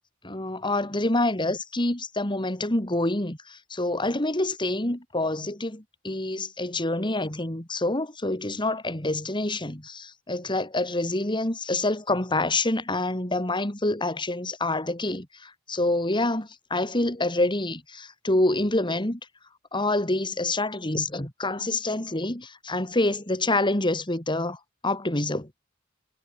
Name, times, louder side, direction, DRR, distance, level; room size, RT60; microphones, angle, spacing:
voice 1, 0.2-19.2 19.7-25.6, left 2 dB, 25° left, 3.0 m, -27 dB
head